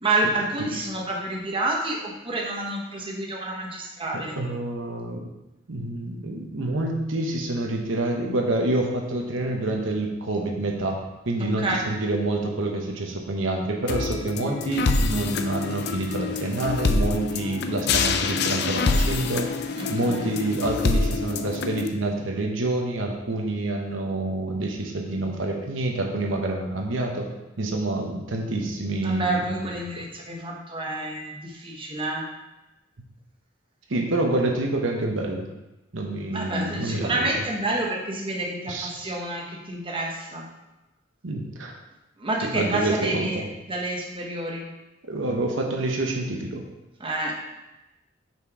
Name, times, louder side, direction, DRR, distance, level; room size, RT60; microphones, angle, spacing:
voice 1, 0.0-4.4 11.4-11.9 19.7-20.4 29.0-32.2 36.3-40.5 42.2-44.7 47.0-47.3, right 2 dB, 30° right, -1 dB, 1.0 m, -29 dB
voice 2, 4.1-5.3 5.7-11.0 11.3-19.5 19.9-27.3 27.6-29.7 33.9-35.5 35.9-37.3 38.7-38.9 41.2-41.7 42.5-43.4 45.0-46.6, right 2 dB, 80° right, 1 dB, 1.0 m, -27 dB
sound 1, 13.9-21.9, left 4 dB, 60° left, 0.5 m, -26 dB
5.8 x 4.5 x 4.7 m, 1.0 s
head